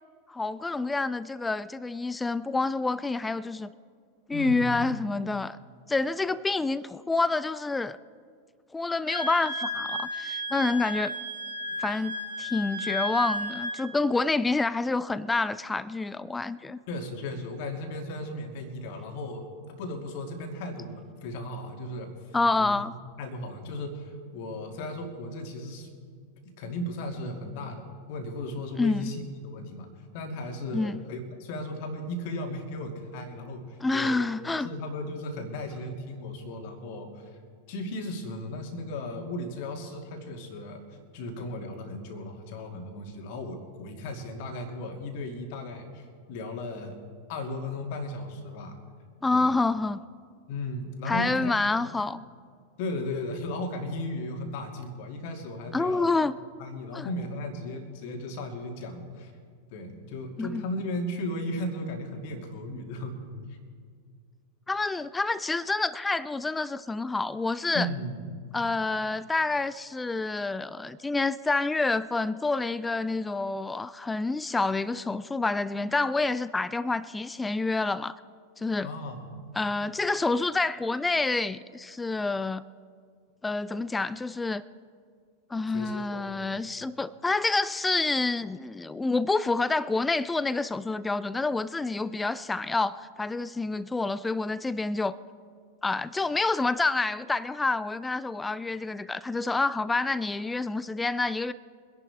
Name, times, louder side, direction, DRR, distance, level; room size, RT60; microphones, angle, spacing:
voice 1, 0.3-3.7 4.3-5.6 5.9-8.0 8.7-11.1 11.8-16.8 22.3-22.9 28.8-29.1 30.7-31.0 33.8-34.7 49.2-50.0 51.1-52.2 55.7-56.3 56.9-57.1 60.4-60.6 64.7-67.9 68.5-78.2 78.6-78.9 79.6-82.6 83.4-84.6 85.5-95.2 95.8-101.5, left 3 dB, 10° left, 0.3 m, -28 dB
voice 2, 4.3-4.8 16.9-25.9 26.6-29.9 30.1-34.2 34.6-37.3 37.7-40.8 41.1-47.0 47.3-48.8 49.3-49.5 50.5-51.5 52.8-56.1 56.6-59.3 59.7-63.6 67.7-68.2 78.8-79.4 85.7-86.5, left 1 dB, 50° left, 2.3 m, -36 dB
Wind instrument woodwind instrument, 9.1-13.8, left 1 dB, 85° right, 2.1 m, -33 dB
24.5 x 11.0 x 3.5 m
figure-of-eight pair, 90°, 0 cm